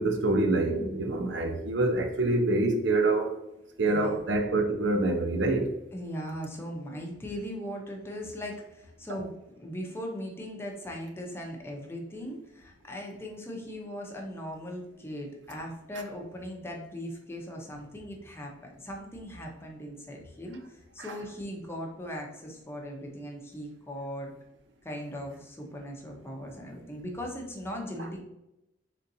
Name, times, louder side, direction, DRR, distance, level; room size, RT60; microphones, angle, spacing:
voice 1, 0.0-3.4 3.8-5.7, right 2 dB, 75° right, 0.6 m, -26 dB
voice 2, 3.9-4.2 5.9-24.3 24.8-28.2, equal, 15° left, 0.7 m, -39 dB
4.0 x 3.7 x 2.7 m
head